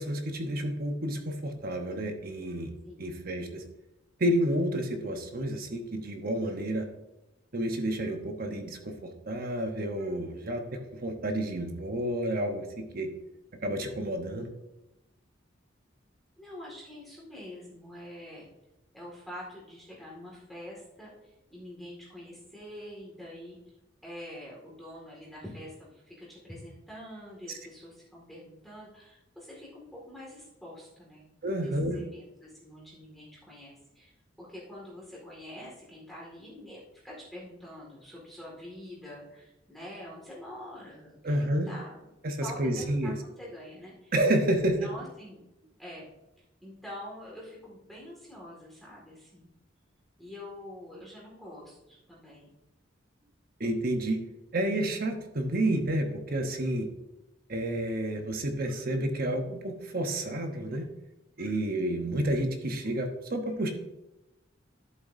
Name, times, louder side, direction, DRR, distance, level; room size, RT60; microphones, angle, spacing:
voice 1, 0.0-2.7 3.0-3.6 4.2-6.9 7.5-13.1 13.6-14.5 31.4-32.0 41.2-41.7 42.2-43.1 44.1-44.8 53.6-54.2 54.5-56.9 57.5-60.8 61.4-63.7, right 1 dB, 50° right, 4 dB, 1.0 m, -30 dB
voice 2, 16.4-18.5 18.9-23.6 24.0-31.3 31.6-42.0 42.4-44.1 44.6-45.4 45.8-46.1 46.6-49.5 50.2-52.5, left 1 dB, ahead, -5 dB, 2.1 m, -46 dB
11.5 x 7.8 x 2.7 m, 0.94 s
head